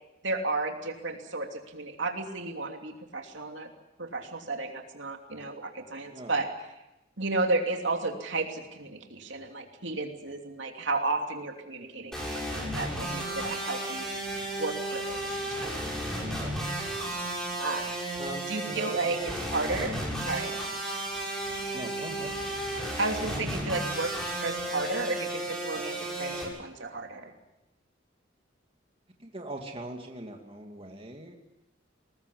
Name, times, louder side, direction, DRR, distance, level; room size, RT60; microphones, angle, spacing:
voice 1, 0.2-3.7 4.0-6.5 7.2-14.1 14.6-15.7 17.6-17.8 18.5-20.0 20.3-20.6 23.0-24.1 24.4-27.3, right 3 dB, 70° right, 3 dB, 2.9 m, -33 dB
sound 1, 12.1-26.4, right 1 dB, 5° left, 7.3 m, -33 dB
voice 2, 16.2-16.6 18.2-19.3 21.7-22.4 29.2-31.4, right 1 dB, 30° right, 2 dB, 2.6 m, -41 dB
22.0 x 20.0 x 8.6 m, 0.90 s
head